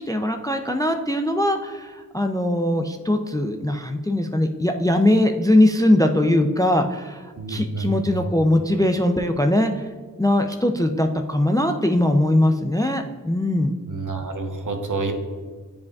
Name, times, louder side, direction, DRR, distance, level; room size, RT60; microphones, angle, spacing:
voice 1, 0.0-9.8 10.2-13.7, left 1 dB, 10° left, 5 dB, 0.3 m, -21 dB
voice 2, 7.4-8.2 13.9-15.1, right 3 dB, 60° right, 4 dB, 0.8 m, -28 dB
9.3 x 5.1 x 2.3 m, 1.5 s
wide cardioid pair, 65°, 34 cm